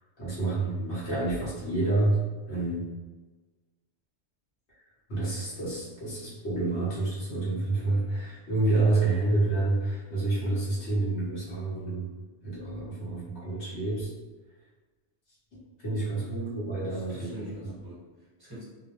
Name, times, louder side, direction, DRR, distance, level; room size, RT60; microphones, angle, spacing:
voice 1, 0.2-2.2 2.4-2.8 5.1-12.1 12.4-14.1 15.5-17.4, right 2 dB, 70° left, -8 dB, 1.3 m, -28 dB
voice 2, 16.8-18.6, equal, 20° right, -10 dB, 1.0 m, -45 dB
2.7 x 2.0 x 2.8 m, 1.2 s
omnidirectional pair, 1.1 m